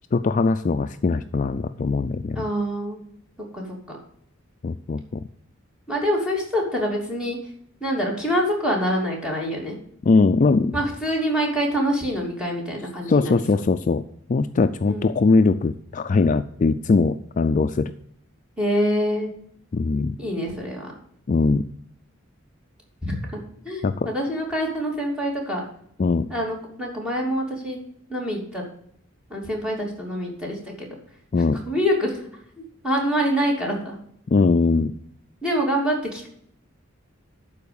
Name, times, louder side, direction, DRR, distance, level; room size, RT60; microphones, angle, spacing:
voice 1, 0.1-2.4 4.6-5.2 10.0-10.7 13.1-14.0 14.3-17.9 19.7-20.2 21.3-21.7 23.8-24.1 26.0-26.3 31.3-31.6 34.3-34.9, left 4 dB, 40° left, 10 dB, 0.4 m, -21 dB
voice 2, 2.3-3.0 3.5-4.0 5.9-7.4 7.8-9.8 10.7-13.6 14.8-15.1 18.6-19.3 20.2-20.9 23.0-23.4 23.6-25.6 26.3-27.8 28.1-28.6 29.3-30.9 31.7-32.2 32.6-33.9 35.4-36.3, equal, 5° right, -3 dB, 2.9 m, -25 dB
11.5 x 4.7 x 6.9 m, 0.68 s
head